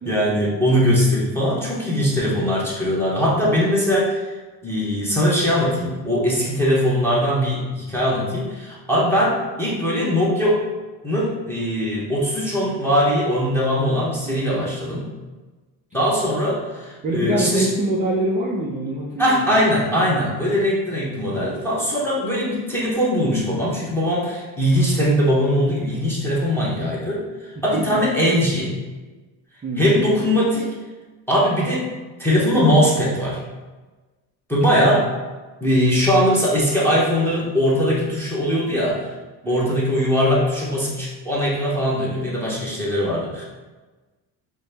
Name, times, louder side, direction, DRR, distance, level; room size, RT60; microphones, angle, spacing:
voice 1, 0.0-4.3 4.6-10.6 11.0-15.1 15.9-17.7 19.2-28.7 29.8-30.7 31.3-31.9 32.2-33.4 34.5-35.1 35.6-39.1 39.5-43.4, equal, 5° left, -6 dB, 0.7 m, -20 dB
voice 2, 14.3-14.7 17.0-19.6 27.6-28.0 29.6-30.0 34.7-35.0 39.4-39.7, right 1 dB, 20° right, -4 dB, 0.3 m, -25 dB
5.4 x 2.1 x 3.3 m, 1.2 s
cardioid pair, 145°, 46 cm